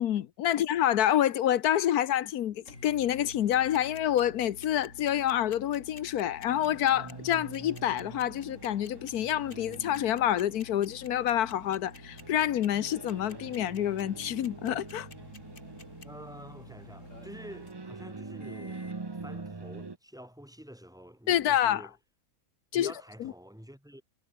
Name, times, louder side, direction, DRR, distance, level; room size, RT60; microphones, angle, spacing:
voice 1, 0.0-15.1 21.3-21.8 22.7-22.9 23.2-23.3, left 11 dB, 70° left, 1.3 m, -27 dB
sound 1, 2.1-19.0, left 2 dB, 50° left, 7.1 m, -51 dB
sound 2, 3.3-16.1, left 4 dB, 35° left, 2.1 m, -50 dB
sound 3, 6.5-20.0, right 3 dB, 20° right, 0.7 m, -45 dB
voice 2, 16.0-18.9 19.1-22.0 22.7-24.0, equal, ahead, 3.7 m, -48 dB
omnidirectional pair, 1.7 m